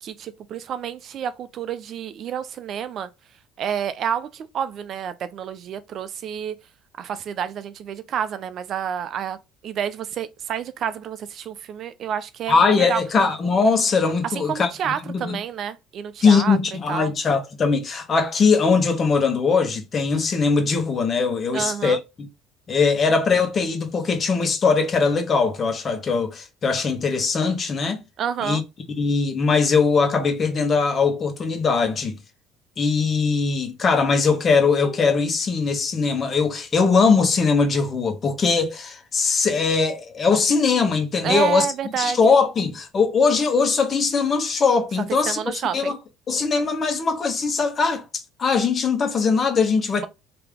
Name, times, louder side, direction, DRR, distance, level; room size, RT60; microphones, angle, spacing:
voice 1, 0.0-3.1 3.6-6.5 7.0-9.4 9.6-13.0 14.2-16.6 16.9-17.1 21.5-22.0 28.2-28.6 41.2-42.2 45.3-45.9, right 8 dB, 55° right, 0.5 m, -29 dB
voice 2, 12.5-14.7 15.0-15.4 16.2-22.3 22.7-28.0 28.4-28.6 29.0-32.2 32.8-41.7 42.0-45.4 45.7-46.0 46.3-48.0 48.4-50.1, left 4 dB, 40° left, 1.2 m, -20 dB
3.3 x 2.8 x 3.6 m
supercardioid pair, 75°, 0 cm